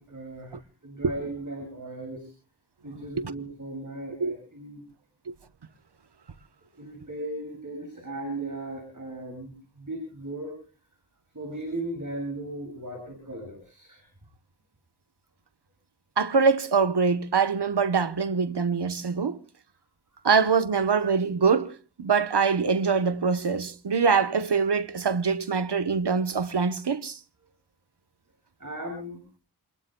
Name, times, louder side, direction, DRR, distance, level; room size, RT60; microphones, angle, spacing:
voice 1, 0.1-2.3 2.8-4.8 6.8-10.6 11.3-14.1 20.1-20.2 28.6-29.2, right 1 dB, 50° right, 7.4 m, -37 dB
voice 2, 16.2-19.4 20.2-27.2, right 5 dB, 80° right, 1.0 m, -24 dB
29.5 x 21.0 x 2.2 m
wide cardioid pair, 55°, 40 cm